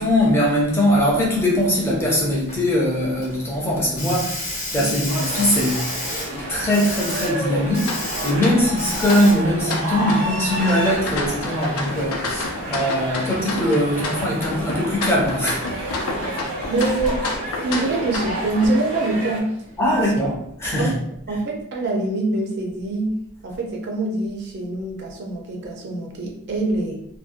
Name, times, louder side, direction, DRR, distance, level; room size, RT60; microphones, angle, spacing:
voice 1, 0.0-5.9 6.3-15.6 19.8-20.9, left 1 dB, 10° left, -4 dB, 0.4 m, -21 dB
Hiss, 1.7-20.1, left 2 dB, 35° left, 0.9 m, -36 dB
sound 1, 5.1-19.4, right 1 dB, 85° right, 1.0 m, -30 dB
sound 2, 7.8-18.7, left 3 dB, 75° left, 0.4 m, -30 dB
voice 2, 16.7-17.2 17.6-19.5 20.0-20.1 20.8-21.0 21.3-23.1 23.4-27.0, right 2 dB, 50° right, 0 dB, 0.4 m, -24 dB
2.6 x 2.1 x 2.4 m, 0.73 s
head